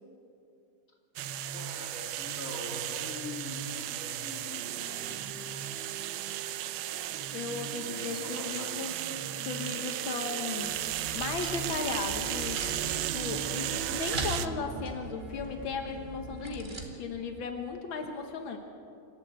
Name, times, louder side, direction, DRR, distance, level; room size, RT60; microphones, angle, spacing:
sound 1, 1.2-14.5, right 12 dB, 85° right, 1.5 m, -35 dB
voice 1, 1.5-5.8 7.7-9.0, left 2 dB, 40° left, 0 dB, 3.3 m, -44 dB
sound 2, 4.6-17.0, right 7 dB, 60° right, 1.6 m, -48 dB
voice 2, 7.3-9.0 9.4-10.8 11.1-18.6, left 5 dB, 85° left, 5 dB, 2.0 m, -36 dB
sound 3, 10.6-16.9, right 1 dB, 25° right, 2.1 m, -41 dB
27.0 x 13.0 x 8.0 m, 2.6 s
omnidirectional pair, 2.1 m